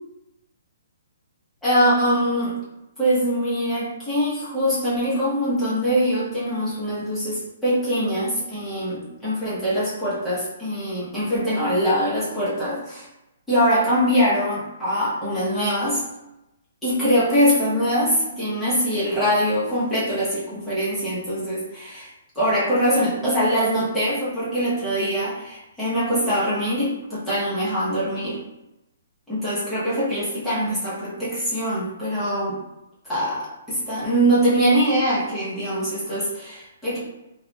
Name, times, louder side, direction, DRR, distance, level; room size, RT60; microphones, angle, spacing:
voice 1, 1.6-2.5 3.0-13.1 13.5-16.0 16.8-22.1 22.3-28.4 29.3-32.6 33.0-37.0, equal, 5° left, -12 dB, 1.0 m, -23 dB
4.2 x 2.4 x 2.4 m, 0.93 s
hypercardioid pair, 175°, 0 cm